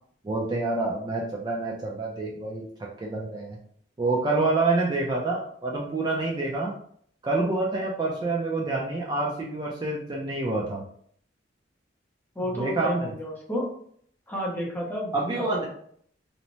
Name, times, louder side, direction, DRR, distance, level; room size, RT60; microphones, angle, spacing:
voice 1, 0.2-2.7 3.0-3.6 4.0-6.7 7.2-10.8 12.5-13.1 15.1-15.7, right 2 dB, 25° right, -3 dB, 0.4 m, -27 dB
voice 2, 12.3-13.7 14.3-15.7, equal, 10° left, -4 dB, 0.7 m, -31 dB
2.7 x 2.0 x 3.0 m, 0.62 s
head